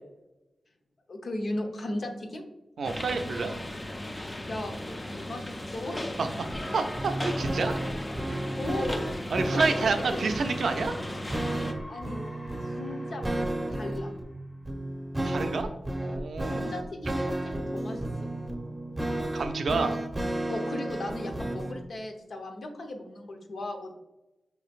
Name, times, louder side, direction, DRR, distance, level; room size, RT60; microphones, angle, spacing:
voice 1, 1.1-2.4 4.5-6.0 8.2-9.1 9.5-10.3 11.9-12.2 12.6-14.1 16.5-18.3 20.5-23.9, left 1 dB, 70° left, 4 dB, 0.7 m, -37 dB
sound 1, 2.8-11.7, left 1 dB, 25° left, 0.5 m, -37 dB
voice 2, 2.8-3.5 6.2-6.5 6.7-7.8 9.3-10.9 15.2-15.7 16.0-16.7 19.3-20.0, right 4 dB, 80° right, 6 dB, 0.5 m, -29 dB
sound 2, 6.5-21.8, right 1 dB, 15° right, 0.7 m, -33 dB
sound 3, 9.6-14.8, left 1 dB, 45° left, 1.1 m, -48 dB
5.3 x 3.1 x 2.4 m, 0.98 s
cardioid pair, 55°, 0 cm